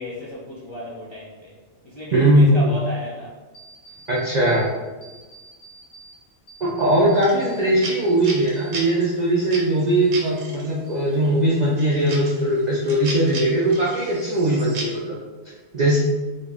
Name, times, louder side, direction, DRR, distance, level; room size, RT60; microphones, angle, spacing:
voice 1, 0.0-1.5 1.8-3.3, equal, 35° left, -6 dB, 0.4 m, -34 dB
voice 2, 2.1-2.7 4.1-4.7 6.6-15.2 15.7-16.0, right 1 dB, 55° right, -5 dB, 0.4 m, -19 dB
sound 1, 3.5-4.7 5.0-6.2 6.5-9.1 9.4-10.6 10.9-11.5, right 2 dB, 70° left, 1.3 m, -47 dB
sound 2, 7.2-10.7 11.2-15.0, right 3 dB, 75° right, 1.1 m, -35 dB
3.8 x 2.4 x 3.4 m, 1.2 s
omnidirectional pair, 1.4 m